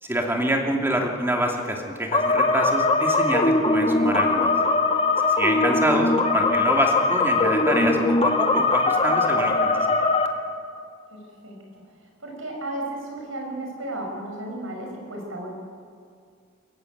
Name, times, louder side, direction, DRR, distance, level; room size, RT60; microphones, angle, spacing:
voice 1, 0.0-4.5 5.3-9.9, right 1 dB, 10° right, 2 dB, 2.5 m, -26 dB
sound 1, 2.1-10.3, left 3 dB, 30° left, 1.6 m, -21 dB
voice 2, 11.1-15.5, right 1 dB, 85° right, 0 dB, 6.4 m, -34 dB
23.0 x 15.0 x 9.4 m, 2.2 s
head